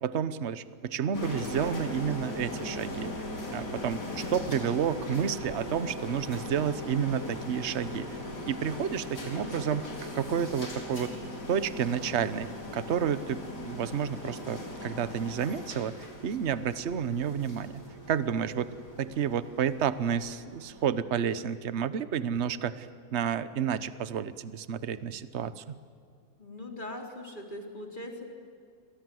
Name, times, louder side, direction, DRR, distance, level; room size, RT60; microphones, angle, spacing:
voice 1, 0.0-3.3 3.5-8.1 8.5-9.9 10.1-11.1 11.5-16.0 16.2-17.8 18.1-25.8, right 8 dB, 45° right, 14 dB, 1.1 m, -30 dB
sound 1, 1.1-20.9, left 1 dB, 65° left, 4.7 m, -39 dB
voice 2, 26.4-28.3, left 1 dB, 25° left, 2 dB, 3.9 m, -40 dB
29.5 x 23.5 x 7.9 m, 2.3 s
omnidirectional pair, 2.0 m